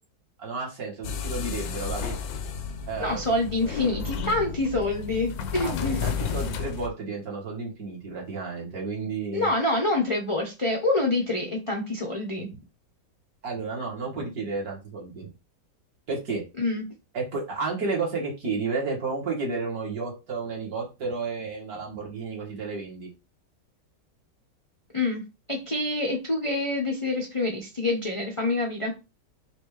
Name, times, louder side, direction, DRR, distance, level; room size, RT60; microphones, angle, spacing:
voice 1, 0.4-2.1 2.9-3.2 5.6-9.5 13.4-15.3 16.1-16.4 17.1-23.1, right 4 dB, 60° right, -2 dB, 2.0 m, -32 dB
sound 1, 1.0-6.9, left 6 dB, 70° left, 1.0 m, -32 dB
voice 2, 3.0-6.0 9.3-12.5 16.6-16.9 24.9-25.2 25.5-28.9, left 2 dB, 45° left, 0 dB, 0.4 m, -26 dB
5.2 x 2.5 x 3.2 m, 0.28 s
omnidirectional pair, 1.9 m